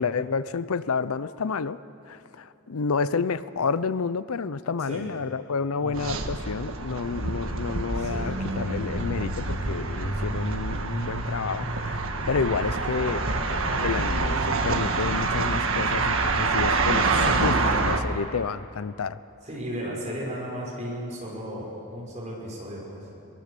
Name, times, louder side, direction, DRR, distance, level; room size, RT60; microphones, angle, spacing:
voice 1, 0.0-1.8 2.1-17.5 17.8-19.2, left 5 dB, 80° left, 16 dB, 0.6 m, -30 dB
voice 2, 5.8-6.1 7.9-8.4 17.3-17.8 19.5-23.1, equal, 30° right, -3 dB, 6.2 m, -35 dB
sound 1, 5.9-18.0, right 3 dB, 70° right, 1.5 m, -26 dB
23.5 x 23.0 x 6.8 m, 2.8 s
head